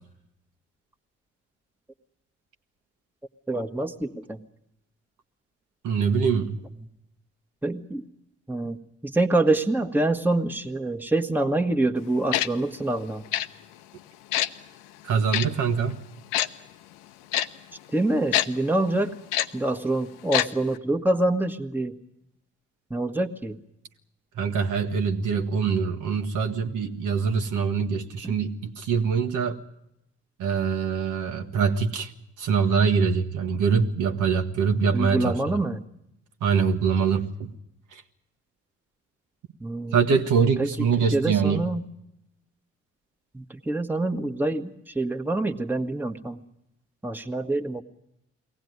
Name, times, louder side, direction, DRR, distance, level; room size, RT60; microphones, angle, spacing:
voice 1, 3.5-4.4 7.6-8.0 8.5-8.8 9.0-13.2 17.9-19.1 19.5-21.9 22.9-23.6 28.2-28.3 34.9-35.8 39.6-40.0 40.6-41.8 43.3-46.4 47.0-47.8, right 2 dB, 5° right, 4 dB, 1.5 m, -26 dB
voice 2, 5.8-6.6 15.0-16.1 24.3-29.6 30.4-32.1 32.4-35.6 36.4-37.5 37.9-38.0 39.9-41.7, right 6 dB, 60° right, 5 dB, 1.4 m, -24 dB
Tick-tock, 12.3-12.5 13.3-13.5 14.3-14.5 15.3-15.5 16.3-16.5 17.3-17.5 18.3-18.5 19.3-19.5 20.3-20.5 20.7-20.8, left 13 dB, 65° left, 0.8 m, -23 dB
23.0 x 17.5 x 9.5 m, 0.83 s
figure-of-eight pair, 40°, 35 cm